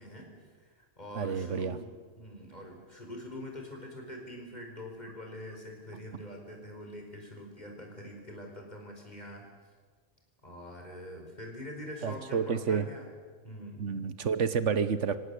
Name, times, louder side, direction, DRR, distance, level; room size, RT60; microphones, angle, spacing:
voice 1, 0.0-9.5 10.4-13.1 13.4-13.9, left 1 dB, 35° left, 1 dB, 5.1 m, -44 dB
voice 2, 1.1-1.8 12.0-12.9 13.8-15.2, right 6 dB, 80° right, 13 dB, 1.4 m, -29 dB
25.5 x 17.0 x 8.4 m, 1.5 s
omnidirectional pair, 1.2 m